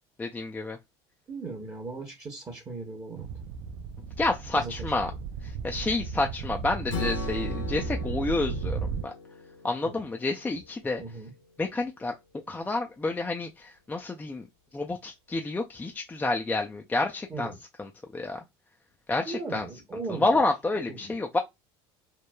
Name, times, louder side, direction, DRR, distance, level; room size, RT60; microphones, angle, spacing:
voice 1, 0.2-0.8 4.2-5.1 5.4-9.1 9.6-11.0 11.6-12.1 12.5-14.5 14.7-17.5 17.8-18.4 19.1-19.6 20.2-21.4, left 2 dB, 10° left, 0.3 m, -29 dB
voice 2, 1.3-3.3 4.5-5.1 9.8-10.0 11.0-11.3 17.3-17.6 19.2-20.4 20.9-21.1, right 3 dB, 25° right, 0.9 m, -38 dB
sound 1, 3.2-9.1, right 5 dB, 65° right, 0.4 m, -34 dB
Strum, 6.9-11.1, left 5 dB, 75° left, 1.0 m, -39 dB
3.0 x 2.0 x 2.2 m
supercardioid pair, 100°, 14 cm